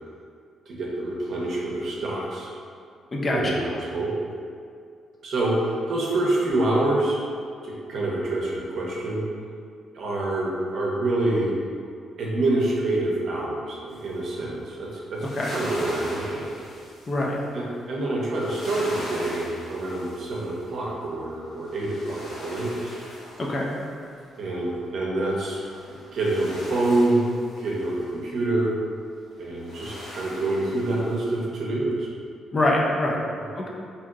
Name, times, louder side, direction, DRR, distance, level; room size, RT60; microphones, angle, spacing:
voice 1, 0.7-2.5 3.1-4.1 5.2-5.5 5.9-7.2 7.6-9.2 9.9-11.5 12.2-16.5 17.5-22.8 24.4-25.6 25.9-27.2 27.6-28.7 29.4-32.1 33.4-33.5, right 2 dB, 65° right, -4 dB, 0.6 m, -26 dB
voice 2, 3.1-3.6 15.4-15.5 17.1-17.4 23.5-23.7 32.5-33.2 33.6-33.7, left 1 dB, 35° left, -2 dB, 0.4 m, -24 dB
sound 1, 13.9-14.3 14.9-17.6 18.3-21.0 21.5-24.5 25.3-28.0 29.4-31.4, equal, 65° left, 0.9 m, -40 dB
2.8 x 2.8 x 2.3 m, 2.3 s
cardioid pair, 90°, 0 cm